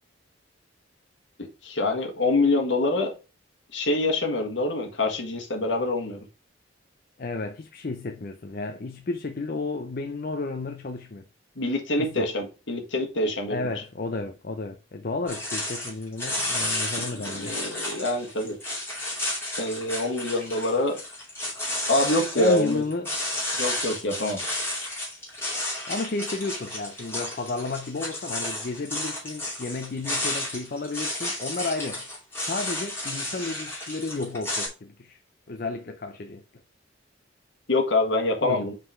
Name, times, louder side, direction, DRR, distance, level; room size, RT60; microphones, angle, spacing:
voice 1, 1.4-3.1 3.7-6.2 11.6-13.7 17.3-18.6 19.6-21.0 21.9-22.8 23.5-24.4 37.7-38.7, left 2 dB, 65° left, 1.5 m, -25 dB
voice 2, 7.2-11.3 12.0-12.3 13.5-17.5 22.4-23.1 25.9-32.1 32.4-35.2 35.5-36.4 38.4-38.7, left 3 dB, 45° left, 0.5 m, -32 dB
sound 1, 15.3-34.7, left 1 dB, 10° left, 2.6 m, -32 dB
5.5 x 3.8 x 4.8 m
head